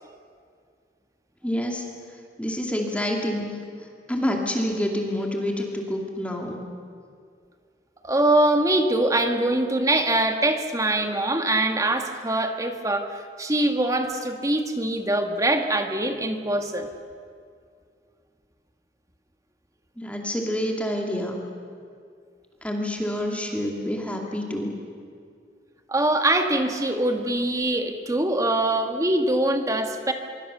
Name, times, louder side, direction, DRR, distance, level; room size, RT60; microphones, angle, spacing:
voice 1, 1.4-1.9 2.4-3.5 4.1-6.6 20.0-21.4 22.6-24.7, equal, 10° left, 1 dB, 2.4 m, -27 dB
voice 2, 8.0-16.9 25.9-30.1, right 1 dB, 20° right, 5 dB, 1.8 m, -23 dB
26.0 x 23.0 x 6.8 m, 2.2 s
head